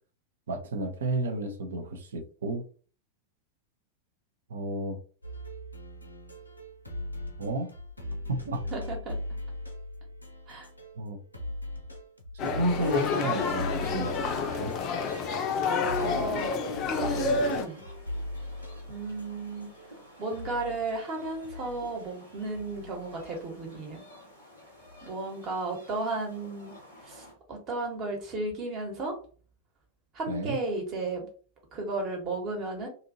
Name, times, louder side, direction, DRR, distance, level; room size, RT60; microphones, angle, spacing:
voice 1, 0.5-2.6 4.5-5.0 7.4-7.7 8.3-8.6 11.0-11.2 12.4-14.7 30.3-30.6, right 2 dB, 65° right, 4 dB, 0.6 m, -32 dB
sound 1, 5.2-11.1 11.3-19.9 20.3-23.5 24.8-25.1, left 1 dB, 85° left, 0.5 m, -40 dB
voice 2, 8.6-9.2 10.5-10.7 16.0-17.8 18.9-19.7 20.2-24.0 25.0-26.7 27.0-29.2 30.1-31.3 31.7-32.9, right 2 dB, 35° right, 1 dB, 1.1 m, -34 dB
sound 2, 12.4-17.6, left 5 dB, 35° left, 0.4 m, -29 dB
sound 3, 12.8-27.3, equal, 90° right, 1.3 m, -51 dB
2.7 x 2.6 x 2.7 m, 0.40 s
figure-of-eight pair, 90°, 0 cm